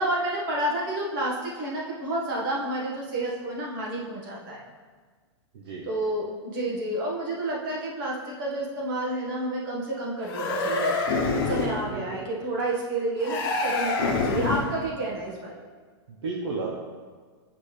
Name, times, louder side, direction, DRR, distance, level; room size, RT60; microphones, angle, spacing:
voice 1, 0.0-4.6 5.9-10.9 11.5-15.6, right 1 dB, 50° right, -4 dB, 1.7 m, -30 dB
voice 2, 5.5-5.9 11.9-12.2 16.1-16.7, right 4 dB, 70° right, -2 dB, 1.0 m, -33 dB
sound 1, 10.2-11.9 13.2-14.8, left 3 dB, 50° left, 1.0 m, -26 dB
7.9 x 5.0 x 3.4 m, 1.5 s
supercardioid pair, 165°, 14 cm